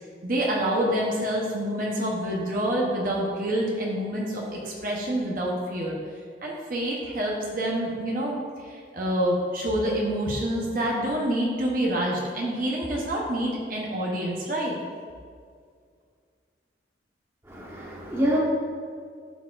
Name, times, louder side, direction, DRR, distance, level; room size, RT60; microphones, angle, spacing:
voice 1, 0.2-5.9 6.4-14.7, right 1 dB, 45° right, -3 dB, 0.9 m, -27 dB
voice 2, 17.5-18.4, equal, 15° right, -5 dB, 1.0 m, -26 dB
12.0 x 4.1 x 2.5 m, 2.1 s
head